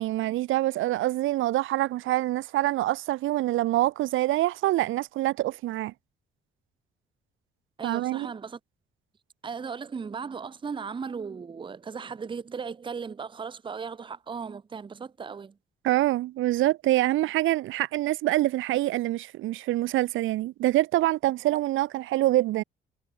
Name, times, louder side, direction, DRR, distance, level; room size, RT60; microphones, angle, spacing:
voice 1, 0.0-5.9 7.8-8.3 15.8-22.6, right 16 dB, 80° right, 0.7 m, -25 dB
voice 2, 7.8-8.6 9.4-15.6, right 5 dB, 25° right, 0.6 m, -36 dB
cardioid pair, 90°, 20 cm